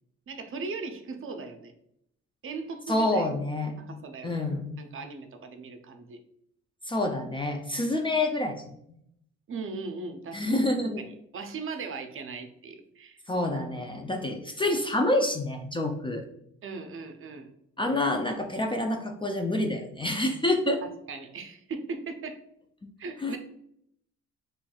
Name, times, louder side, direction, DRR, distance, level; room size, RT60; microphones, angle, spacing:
voice 1, 0.3-1.7 2.4-3.3 3.8-4.4 4.8-6.2 9.5-10.6 11.0-13.2 16.6-17.5 20.8-22.4 23.0-23.4, right 4 dB, 45° right, 6 dB, 0.6 m, -38 dB
voice 2, 2.9-3.7 4.2-4.8 6.9-8.6 10.3-11.0 13.3-16.3 17.8-20.8 23.2-23.4, left 1 dB, 15° left, 3 dB, 0.4 m, -27 dB
4.4 x 3.1 x 2.3 m, 0.74 s
cardioid pair, 90°, 30 cm